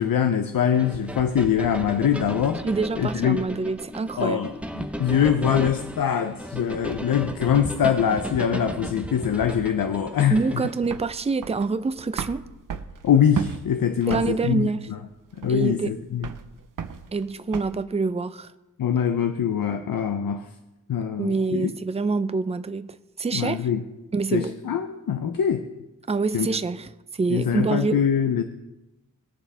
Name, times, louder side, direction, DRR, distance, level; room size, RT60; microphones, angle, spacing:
voice 1, 0.0-2.6 3.0-3.4 4.2-10.6 13.0-15.0 15.4-16.3 18.8-20.5 20.9-21.7 23.3-23.8 24.3-25.7 26.3-26.5 27.3-28.4, left 8 dB, 80° left, 0.7 m, -23 dB
sound 1, 0.8-10.7, equal, 5° right, 0.8 m, -35 dB
voice 2, 2.6-4.4 10.3-12.4 14.1-14.9 15.5-15.9 17.1-18.5 21.2-23.7 24.1-24.5 26.1-28.0, right 4 dB, 20° right, 0.4 m, -26 dB
sound 2, 10.3-17.8, right 6 dB, 70° right, 0.7 m, -35 dB
20.5 x 7.1 x 3.4 m
wide cardioid pair, 100°, 33 cm